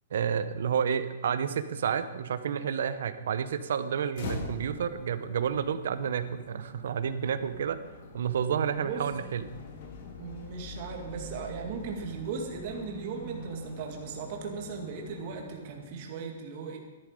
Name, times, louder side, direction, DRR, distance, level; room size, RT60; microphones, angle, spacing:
voice 1, 0.1-7.8 8.1-9.5, right 7 dB, 65° right, 12 dB, 0.9 m, -30 dB
sound 1, 4.1-16.1, left 2 dB, 45° left, 1.9 m, -44 dB
voice 2, 8.8-9.1 10.2-16.8, right 5 dB, 35° right, 2 dB, 2.0 m, -37 dB
12.5 x 11.5 x 5.0 m, 1.2 s
hypercardioid pair, 170°, 0 cm